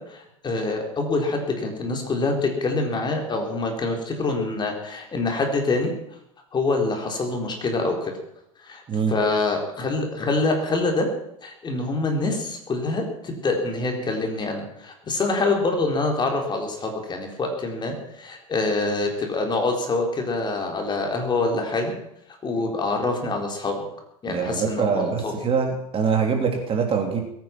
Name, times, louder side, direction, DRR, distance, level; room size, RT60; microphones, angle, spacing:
voice 1, 0.1-5.9 6.5-8.1 8.6-8.8 9.1-11.1 11.4-21.9 22.4-23.9 24.2-25.3, left 3 dB, 25° left, 2 dB, 4.1 m, -25 dB
voice 2, 24.3-27.2, right 6 dB, 30° right, 3 dB, 3.1 m, -24 dB
21.0 x 9.6 x 6.1 m, 0.76 s
hypercardioid pair, 100°, 17 cm